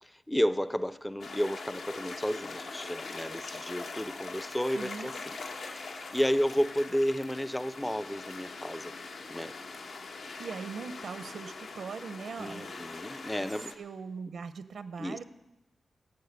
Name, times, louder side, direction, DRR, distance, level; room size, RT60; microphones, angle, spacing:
voice 1, 0.0-5.4 5.6-8.9 9.3-9.5 12.4-13.7 15.0-15.2, equal, 5° left, 15 dB, 0.4 m, -32 dB
sound 1, 1.2-13.7, left 3 dB, 75° left, 1.4 m, -42 dB
voice 2, 4.7-5.2 10.4-12.8 13.4-15.2, right 5 dB, 85° right, 13 dB, 0.6 m, -41 dB
16.0 x 7.1 x 8.0 m, 0.94 s
wide cardioid pair, 160°, 0 cm